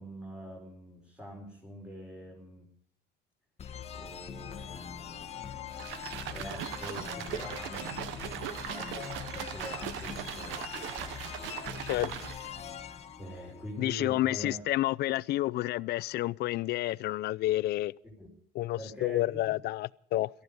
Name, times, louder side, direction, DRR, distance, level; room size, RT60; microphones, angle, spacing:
voice 1, 0.0-2.7 3.9-5.7 6.3-7.9 8.7-9.0 9.3-11.7 13.2-14.5 18.2-18.3 18.8-19.4, equal, 5° right, 4.9 m, -44 dB
sound 1, 3.6-14.2, left 8 dB, 30° left, 1.3 m, -42 dB
sound 2, 5.7-12.6, right 11 dB, 70° right, 1.1 m, -39 dB
voice 2, 11.8-12.3 13.8-17.9 18.5-20.3, left 16 dB, 55° left, 0.5 m, -30 dB
18.5 x 14.0 x 5.4 m
cardioid pair, 135°, 20 cm